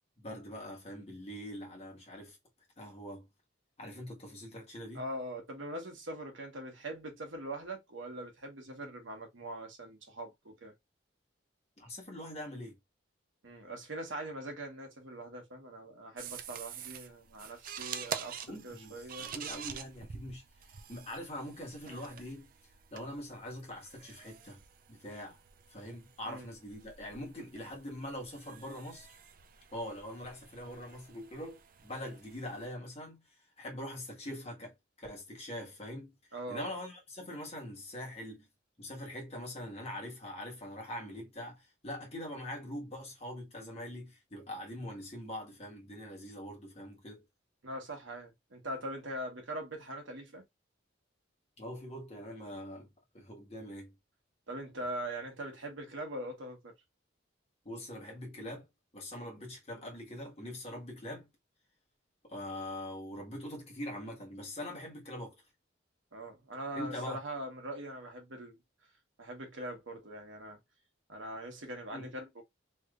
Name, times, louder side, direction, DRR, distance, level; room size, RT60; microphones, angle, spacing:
voice 1, 0.2-2.4 2.8-3.3 3.8-5.1 11.8-12.8 18.4-20.4 20.9-22.5 22.9-24.6 24.9-25.4 25.7-29.2 29.7-33.3 33.6-36.1 36.5-38.5 38.8-47.2 51.6-54.0 57.6-58.7 58.9-61.3 62.2-65.3 66.7-67.2 71.9-72.1, left 1 dB, 30° left, 1.4 m, -43 dB
voice 2, 4.9-10.7 13.4-19.4 26.3-26.5 36.3-36.7 47.6-50.4 54.5-56.7 66.1-68.6 69.2-70.6 71.1-72.4, right 1 dB, 80° right, 1.2 m, -42 dB
sound 1, 16.2-32.7, right 7 dB, 45° right, 0.4 m, -47 dB
3.2 x 3.0 x 2.4 m
head